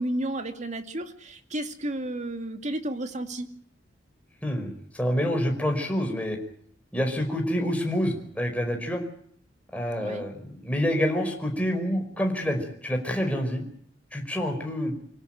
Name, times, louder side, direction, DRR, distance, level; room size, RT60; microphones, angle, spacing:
voice 1, 0.0-3.5 10.0-10.2, right 1 dB, 40° right, 7 dB, 2.4 m, -32 dB
voice 2, 4.4-6.4 6.9-9.0 9.7-13.6 14.1-14.9, equal, 10° left, 2 dB, 5.0 m, -27 dB
25.5 x 17.5 x 9.1 m, 0.64 s
head